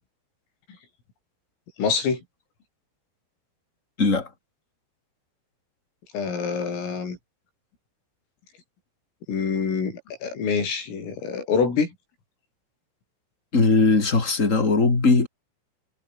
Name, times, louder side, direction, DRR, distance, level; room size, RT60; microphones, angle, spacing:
voice 1, 1.8-2.2 6.1-7.2 9.3-11.9, left 5 dB, 80° left, 9.6 m, -26 dB
voice 2, 4.0-4.3 13.5-15.3, left 3 dB, 20° left, 2.7 m, -19 dB
omnidirectional pair, 5.8 m